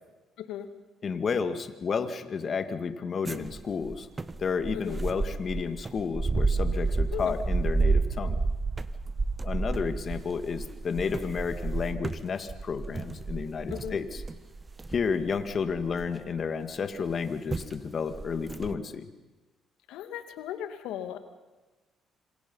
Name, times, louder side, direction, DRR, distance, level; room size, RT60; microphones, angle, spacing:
voice 1, 0.4-0.7 4.9-5.0 7.1-7.4 13.7-14.0 19.9-21.2, left 10 dB, 75° left, 9 dB, 2.1 m, -36 dB
voice 2, 1.0-4.1 4.4-8.4 9.4-14.2 14.9-19.1, left 5 dB, 45° left, 9 dB, 2.2 m, -31 dB
Terrace walking, 3.3-16.4 17.1-17.2 17.5-17.7 18.1-18.8, right 3 dB, 25° right, 1.3 m, -30 dB
27.0 x 26.5 x 5.7 m, 1.2 s
hypercardioid pair, 55°, 0 cm